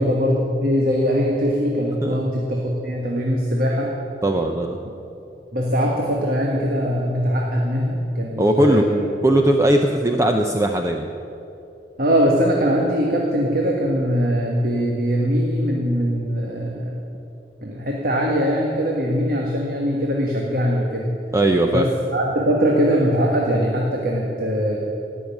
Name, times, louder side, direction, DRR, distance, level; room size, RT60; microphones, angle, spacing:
voice 1, 0.0-3.9 5.5-9.1 12.0-16.9 17.6-21.1 21.7-24.8, equal, 55° right, -1 dB, 1.5 m, -21 dB
voice 2, 4.2-4.8 8.4-8.9 9.2-11.1 21.3-21.9, right 1 dB, 15° right, 4 dB, 0.6 m, -18 dB
18.0 x 6.4 x 9.1 m, 2.8 s
head